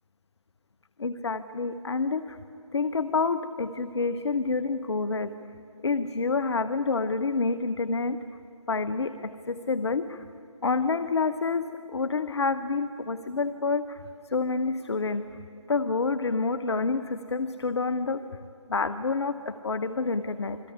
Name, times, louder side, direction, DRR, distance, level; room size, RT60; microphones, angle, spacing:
voice 1, 1.0-2.4 2.7-5.3 5.8-8.2 8.7-10.2 10.6-15.3 15.7-18.2 18.7-20.6, left 4 dB, 55° left, 10 dB, 1.0 m, -28 dB
28.0 x 21.0 x 9.6 m, 2.7 s
figure-of-eight pair, 155°, 17 cm